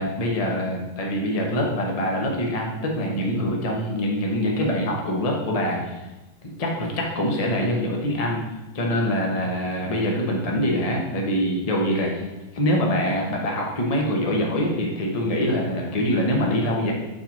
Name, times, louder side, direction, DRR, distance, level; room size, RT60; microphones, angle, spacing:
voice 1, 0.0-6.0 6.4-8.4 8.7-12.3 12.5-16.9, equal, 25° left, -1 dB, 0.8 m, -24 dB
4.7 x 4.5 x 6.0 m, 1.0 s
omnidirectional pair, 2.2 m